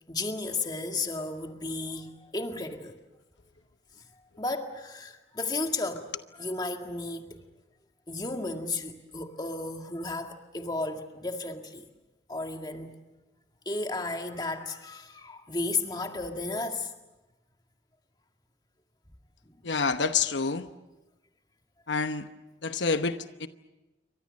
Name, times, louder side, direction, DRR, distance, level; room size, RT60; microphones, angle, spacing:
voice 1, 0.1-3.0 4.0-4.1 4.4-6.1 6.3-7.4 8.1-11.9 12.3-13.0 13.7-16.9, left 3 dB, 25° left, 1.9 m, -33 dB
voice 2, 19.6-20.7 21.9-22.3 22.6-23.5, left 4 dB, 90° left, 1.0 m, -28 dB
28.5 x 24.5 x 6.5 m
head